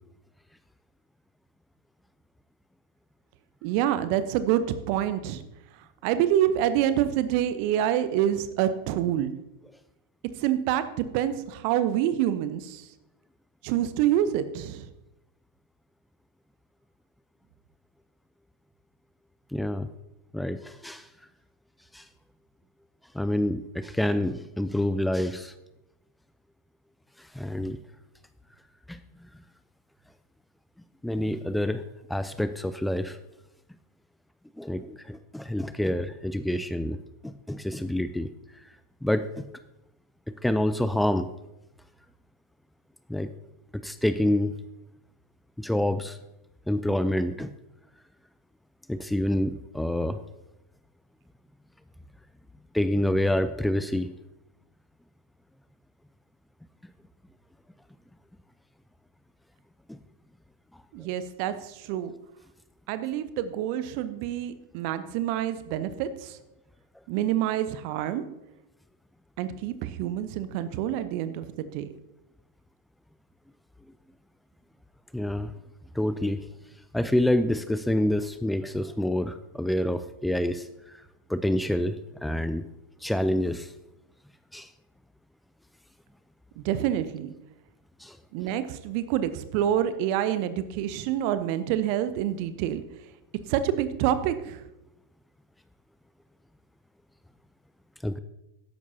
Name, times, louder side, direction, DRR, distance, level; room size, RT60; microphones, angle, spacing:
voice 1, 3.6-5.4 6.0-9.3 10.4-12.9 13.6-14.9 60.9-62.1 62.9-66.4 67.1-68.2 69.4-71.9 86.6-87.3 88.3-92.8 93.5-94.6, right 11 dB, 45° right, 13 dB, 0.7 m, -27 dB
voice 2, 19.5-19.9 20.3-21.1 21.9-22.0 23.1-25.5 27.2-27.8 28.9-29.0 31.0-31.8 32.1-33.2 34.6-37.0 37.2-38.3 39.0-39.5 40.3-41.3 43.1-43.3 43.7-44.5 45.6-46.2 46.7-47.5 48.9-50.2 52.7-54.1 59.9-60.0 75.1-75.5 75.9-76.4 76.9-81.0 81.3-82.7 83.0-83.7 84.5-84.7 88.0-88.2 98.0-98.2, left 1 dB, 5° left, 11 dB, 0.4 m, -27 dB
13.0 x 11.0 x 2.8 m, 0.92 s
figure-of-eight pair, 90°, 0 cm